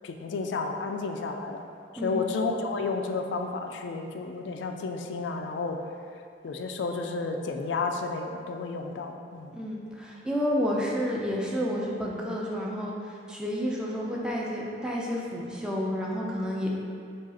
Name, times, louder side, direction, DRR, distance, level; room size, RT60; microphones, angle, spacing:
voice 1, 0.0-1.6 2.0-5.8 6.4-9.5, left 4 dB, 85° left, 4 dB, 0.4 m, -31 dB
voice 2, 9.5-16.7, equal, 5° right, -4 dB, 0.5 m, -30 dB
4.8 x 2.4 x 4.2 m, 2.4 s
head